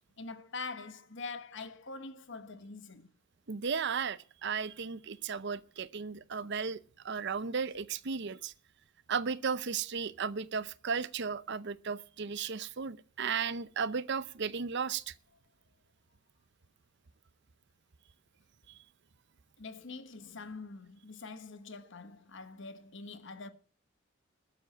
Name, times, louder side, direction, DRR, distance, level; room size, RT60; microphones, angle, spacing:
voice 1, 0.2-3.1 19.6-23.5, left 3 dB, 60° left, 1.2 m, -44 dB
voice 2, 3.5-6.8 7.0-8.5 9.1-15.1 18.7-18.8, right 6 dB, 60° right, 0.7 m, -35 dB
12.5 x 7.3 x 9.4 m
head